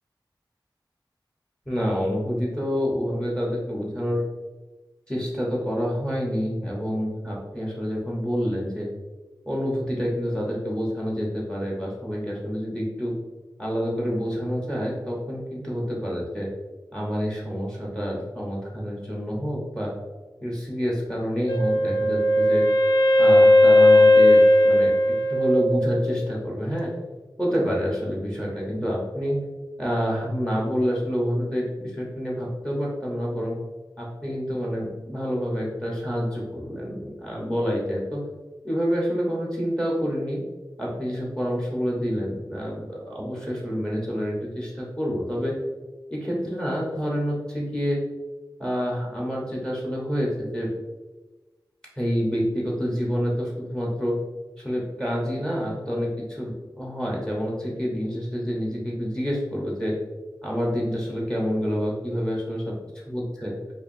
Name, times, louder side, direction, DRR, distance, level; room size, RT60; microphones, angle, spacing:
voice 1, 1.7-4.2 5.1-8.9 9.5-13.1 13.6-16.5 16.9-19.9 20.4-22.6 23.2-26.9 27.4-29.4 29.8-33.5 34.0-38.2 38.6-40.4 40.8-45.5 46.1-48.0 48.6-50.7 52.0-54.2 54.6-59.9 60.4-62.6 63.1-63.5, equal, 10° left, -3 dB, 1.0 m, -28 dB
Wind instrument woodwind instrument, 21.5-26.3, left 1 dB, 55° left, 0.4 m, -17 dB
4.6 x 2.6 x 2.6 m, 1.2 s
wide cardioid pair, 60°, 8 cm